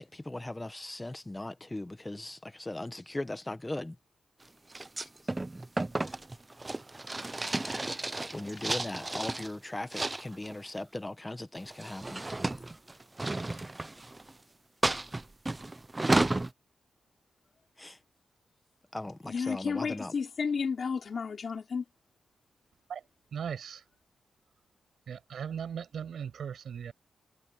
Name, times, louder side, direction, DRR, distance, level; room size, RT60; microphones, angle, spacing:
voice 1, 0.0-4.0 8.3-12.2 17.8-18.0 18.9-20.1, left 1 dB, 10° left, 1.0 m, -39 dB
sound 1, 4.7-9.5 9.9-10.6 11.6-14.3 14.8-16.5, right 2 dB, 15° right, 0.5 m, -32 dB
voice 2, 19.3-21.9, left 5 dB, 45° left, 4.6 m, -33 dB
voice 3, 23.3-23.8 25.1-26.9, right 7 dB, 70° right, 7.1 m, -38 dB
wide cardioid pair, 140°, 0 cm